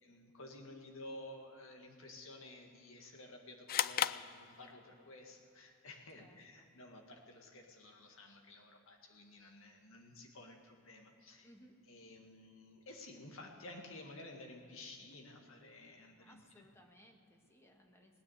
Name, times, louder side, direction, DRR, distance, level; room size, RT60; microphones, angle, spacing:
voice 1, 0.0-11.5 11.9-16.7, left 2 dB, 65° left, 2 dB, 1.9 m, -53 dB
sound 1, 3.7-5.1, left 11 dB, 45° left, 0.3 m, -36 dB
voice 2, 6.1-6.7 11.4-11.8 16.2-18.2, equal, 10° left, 2 dB, 1.6 m, -63 dB
18.5 x 9.7 x 8.0 m, 2.6 s
head